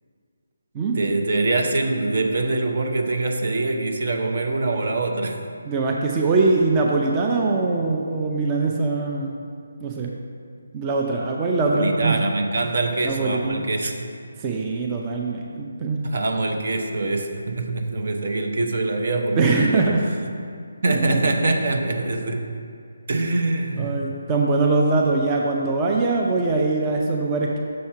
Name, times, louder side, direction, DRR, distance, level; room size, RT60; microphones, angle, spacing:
voice 1, 0.9-5.4 11.7-14.0 16.0-20.0 20.8-22.5 23.1-24.0, right 2 dB, 55° right, 4 dB, 0.7 m, -24 dB
voice 2, 5.6-9.4 9.8-10.2 10.7-12.2 13.0-13.7 14.4-16.0 19.4-20.0 20.9-21.3 23.8-27.6, right 3 dB, 20° right, -1 dB, 0.5 m, -22 dB
6.4 x 4.2 x 5.7 m, 2.3 s
figure-of-eight pair, 155°, 0 cm